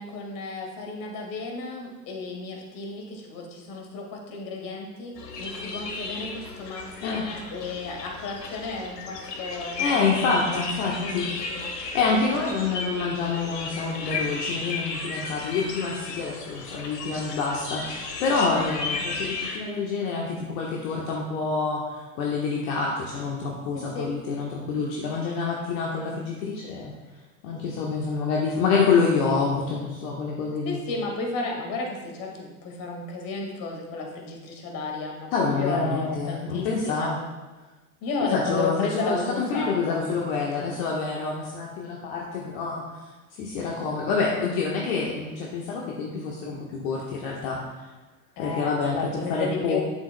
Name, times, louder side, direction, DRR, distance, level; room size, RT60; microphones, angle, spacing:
voice 1, 0.0-9.9 10.2-10.6 11.0-11.7 12.1-12.2 12.6-12.7 23.7-24.2 30.6-37.1 38.0-40.0 48.4-49.8, left 3 dB, 45° left, 1 dB, 1.8 m, -33 dB
sound 1, 5.2-19.6, left 3 dB, 80° left, 1.3 m, -34 dB
voice 2, 9.4-11.3 11.7-26.9 27.4-30.8 35.3-37.2 38.2-42.8 43.4-47.6 48.4-49.0 49.3-49.8, left 4 dB, 60° left, -3 dB, 1.3 m, -27 dB
9.6 x 7.5 x 2.2 m, 1.2 s
hypercardioid pair, 95°, 48 cm